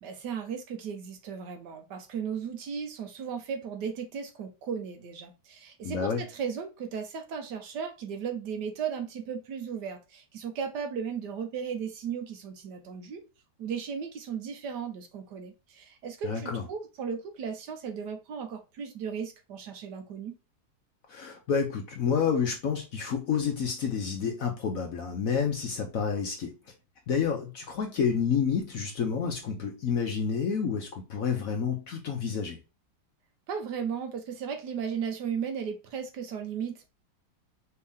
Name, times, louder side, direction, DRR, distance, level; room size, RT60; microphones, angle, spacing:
voice 1, 0.0-13.2 13.6-20.4 33.5-36.9, right 7 dB, 70° right, 1.3 m, -36 dB
voice 2, 5.8-6.2 16.2-16.6 21.1-26.6 27.1-32.6, left 6 dB, 60° left, 1.0 m, -29 dB
4.5 x 2.8 x 3.5 m
omnidirectional pair, 2.0 m